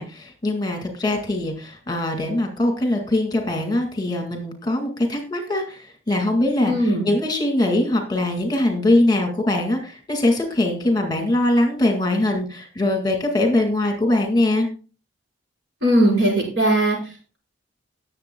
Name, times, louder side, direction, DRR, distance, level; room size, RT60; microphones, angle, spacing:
voice 1, 0.0-14.7, left 1 dB, 20° left, 3 dB, 1.9 m, -22 dB
voice 2, 6.6-7.1 15.8-17.4, right 1 dB, 65° right, -2 dB, 5.3 m, -19 dB
19.0 x 7.4 x 2.2 m, 0.36 s
head